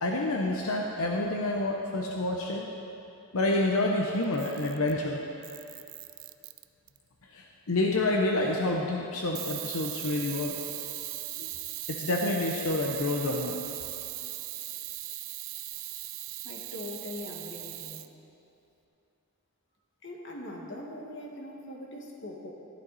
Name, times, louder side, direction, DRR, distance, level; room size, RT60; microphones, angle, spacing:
voice 1, 0.0-2.6 3.3-5.2 7.3-10.6 11.4-11.5 11.9-13.6, left 2 dB, 85° left, 0 dB, 0.9 m, -28 dB
Camera, 4.2-5.0 5.4-7.0 9.4-18.1, right 16 dB, 65° right, 0.4 m, -39 dB
voice 2, 16.4-18.1 20.0-22.5, left 1 dB, 55° left, -1 dB, 1.7 m, -41 dB
13.5 x 12.0 x 4.1 m, 2.8 s
head